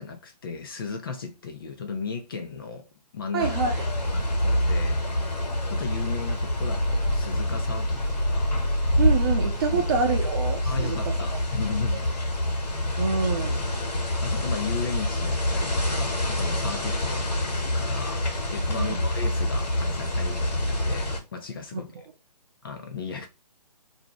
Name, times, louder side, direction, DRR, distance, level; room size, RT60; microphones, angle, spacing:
voice 1, 0.0-3.5 4.1-5.4 5.7-8.6 9.7-9.9 10.7-12.1 14.2-21.9 22.6-23.3, left 5 dB, 35° left, 0.4 m, -36 dB
voice 2, 3.3-3.7 9.0-11.0 13.0-13.7 18.7-19.0 21.7-22.0, right 5 dB, 35° right, 0.6 m, -27 dB
sound 1, 3.4-21.2, left 1 dB, 75° left, 1.2 m, -26 dB
2.6 x 2.1 x 2.8 m
hypercardioid pair, 150°, 21 cm